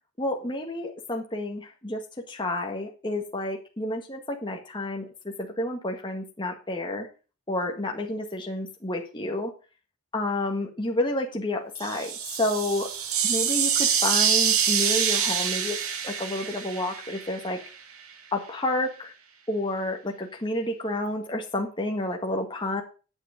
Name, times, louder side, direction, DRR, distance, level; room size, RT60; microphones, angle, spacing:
voice 1, 0.2-7.1 7.5-9.5 10.1-12.1 12.4-12.9 13.2-15.8 16.0-17.6 18.3-19.1 19.5-22.8, left 1 dB, 20° left, 1 dB, 1.7 m, -30 dB
sound 1, 11.8-17.7, right 8 dB, 85° right, 1.8 m, -26 dB
9.8 x 8.9 x 5.2 m, 0.34 s
head